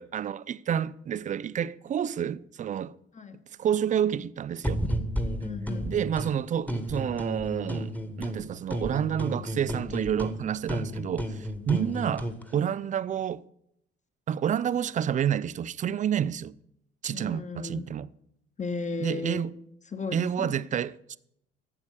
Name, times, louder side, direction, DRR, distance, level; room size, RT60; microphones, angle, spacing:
voice 1, 0.0-2.9 3.6-4.8 5.9-13.4 14.3-16.6 17.0-18.1 19.0-19.5 20.1-21.2, right 9 dB, 25° right, 0.4 m, -29 dB
voice 2, 3.1-3.4 5.4-5.9 11.7-12.0 17.1-17.9 18.6-19.5 19.9-20.5, left 4 dB, 25° left, 1.4 m, -35 dB
sound 1, 4.6-6.3 6.7-8.4 8.7-12.4, equal, 5° left, 1.5 m, -32 dB
12.0 x 8.2 x 6.6 m
figure-of-eight pair, 50°, 31 cm